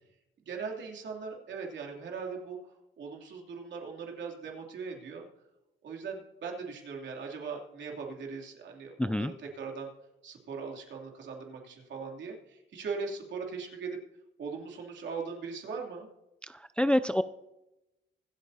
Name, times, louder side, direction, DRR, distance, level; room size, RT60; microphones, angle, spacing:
voice 1, 0.5-2.7 3.0-5.2 5.8-9.9 10.2-14.0 14.4-16.1, right 5 dB, 65° right, 0 dB, 3.0 m, -39 dB
voice 2, 9.0-9.3 16.5-17.2, left 1 dB, 5° left, 12 dB, 0.3 m, -27 dB
25.0 x 8.4 x 2.8 m, 0.95 s
cardioid pair, 90°, 20 cm